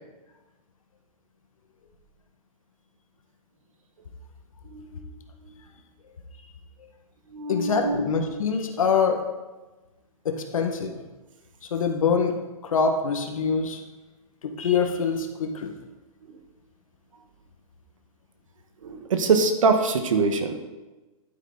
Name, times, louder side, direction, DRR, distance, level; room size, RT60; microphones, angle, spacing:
voice 1, 4.6-5.2 5.4-5.5 7.3-8.0 18.8-20.6, right 4 dB, 65° right, 7 dB, 1.5 m, -24 dB
voice 2, 7.5-9.2 10.2-11.0 11.7-12.4 12.6-13.8 14.4-15.7, left 5 dB, 65° left, 4 dB, 1.7 m, -24 dB
11.5 x 8.7 x 4.0 m, 1.2 s
hypercardioid pair, 180°, 18 cm